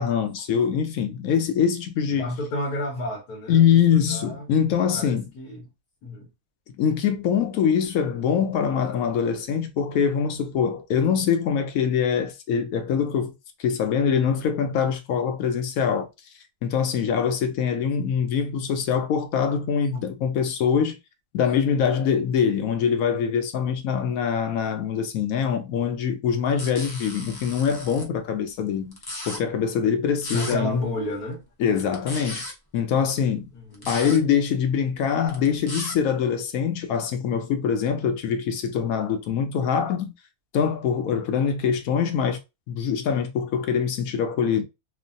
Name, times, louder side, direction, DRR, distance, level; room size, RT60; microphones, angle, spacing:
voice 1, 0.0-2.2 3.5-5.3 6.8-13.3 13.6-16.1 16.6-21.0 21.3-29.0 29.3-30.8 31.6-32.4 32.7-33.5 33.9-40.1 40.5-42.4 42.7-44.6, left 7 dB, 75° left, 1.0 m, -23 dB
voice 2, 2.1-4.5 4.9-5.7 6.0-6.3 19.9-20.0 30.3-31.5 33.5-33.9, left 1 dB, 90° left, 1.4 m, -31 dB
sound 1, 26.6-28.0 28.9-29.4 30.2-30.6 31.8-32.5 33.7-34.2 35.2-35.9, left 1 dB, 30° left, 0.4 m, -35 dB
3.1 x 2.1 x 2.6 m
omnidirectional pair, 1.6 m